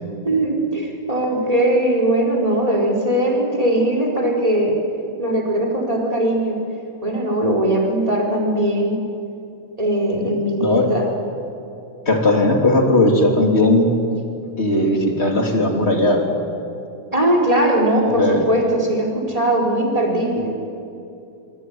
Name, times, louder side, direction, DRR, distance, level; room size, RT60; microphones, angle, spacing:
voice 1, 0.2-4.8 5.2-6.6 7.0-9.0 9.8-11.1 17.1-20.5, right 1 dB, 10° right, 1 dB, 4.2 m, -20 dB
voice 2, 10.2-10.9 12.1-13.9 14.6-16.3 18.1-18.4, left 1 dB, 20° left, 2 dB, 2.9 m, -17 dB
25.0 x 24.0 x 9.5 m, 2.7 s
omnidirectional pair, 3.9 m